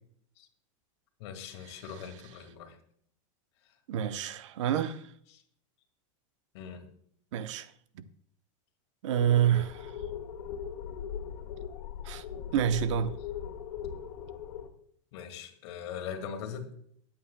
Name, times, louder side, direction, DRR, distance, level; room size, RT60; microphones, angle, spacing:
voice 1, 1.2-2.8 5.3-5.4 6.5-6.8 15.1-16.6, left 7 dB, 55° left, 1.8 m, -41 dB
voice 2, 3.9-5.1 7.3-8.0 9.0-10.0 12.0-12.2 12.5-13.1, right 10 dB, 70° right, 0.8 m, -28 dB
sound 1, 9.1-14.7, left 8 dB, 85° left, 1.8 m, -39 dB
20.0 x 8.7 x 2.2 m
supercardioid pair, 170°, 17 cm